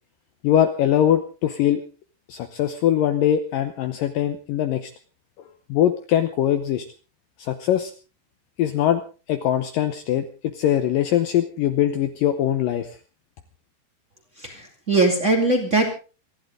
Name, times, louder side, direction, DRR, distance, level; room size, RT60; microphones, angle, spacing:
voice 1, 0.4-1.8 2.3-4.9 5.7-6.9 7.4-7.9 8.6-9.0 9.3-13.0, left 11 dB, 70° left, 8 dB, 2.2 m, -22 dB
voice 2, 14.4-15.8, right 2 dB, 20° right, 1 dB, 2.6 m, -20 dB
27.5 x 11.5 x 3.8 m, 0.35 s
omnidirectional pair, 4.8 m